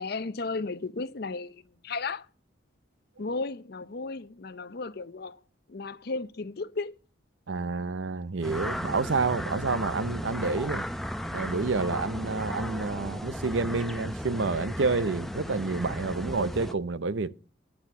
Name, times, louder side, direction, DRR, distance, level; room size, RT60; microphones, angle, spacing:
voice 1, 0.0-2.3 3.2-5.4 5.7-6.9, left 3 dB, 55° left, 0.6 m, -34 dB
voice 2, 7.5-10.8 11.3-17.3, right 4 dB, 75° right, 0.7 m, -29 dB
sound 1, 8.4-16.7, equal, ahead, 0.6 m, -35 dB
9.8 x 6.9 x 7.0 m
head